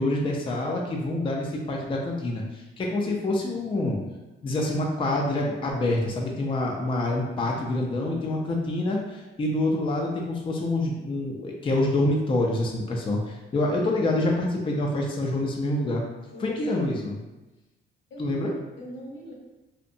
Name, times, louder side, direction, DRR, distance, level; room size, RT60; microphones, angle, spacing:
voice 1, 0.0-4.0 4.4-16.0 16.4-17.2 18.2-18.5, left 1 dB, 25° left, -1 dB, 0.4 m, -26 dB
voice 2, 16.3-17.2 18.1-19.3, equal, 75° left, -2 dB, 0.8 m, -42 dB
2.6 x 2.1 x 2.6 m, 1.1 s
cardioid pair, 90°, 20 cm